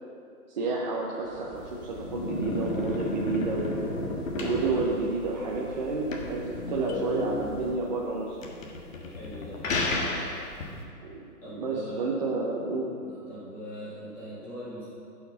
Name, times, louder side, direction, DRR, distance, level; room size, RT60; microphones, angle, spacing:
voice 1, 0.5-3.8 4.4-8.4 11.0-11.3 11.6-12.9, right 3 dB, 30° right, -3 dB, 0.8 m, -30 dB
sound 1, 1.2-7.7, left 1 dB, 10° right, 2.5 m, -48 dB
sound 2, 1.6-10.8, left 2 dB, 55° left, 1.6 m, -33 dB
sound 3, 6.9-8.1, left 6 dB, 75° left, 0.8 m, -39 dB
voice 2, 9.1-9.8 11.4-12.3 13.0-14.9, equal, 5° left, -8 dB, 0.6 m, -41 dB
11.0 x 5.8 x 5.6 m, 2.4 s
hypercardioid pair, 145°, 46 cm